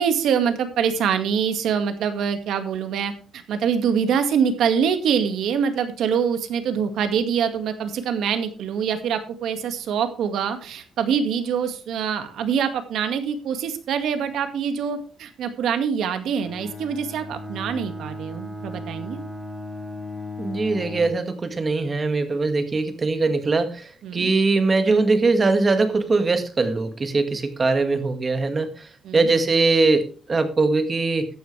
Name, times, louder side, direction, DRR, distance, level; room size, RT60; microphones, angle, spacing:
voice 1, 0.0-19.2 24.0-24.3 29.0-29.3, right 7 dB, 70° right, 8 dB, 2.0 m, -24 dB
Bowed string instrument, 16.4-21.3, left 2 dB, 5° right, 3.0 m, -35 dB
voice 2, 20.4-31.3, right 3 dB, 25° right, 8 dB, 1.9 m, -21 dB
14.0 x 9.5 x 3.4 m, 0.38 s
cardioid pair, 135°, 0 cm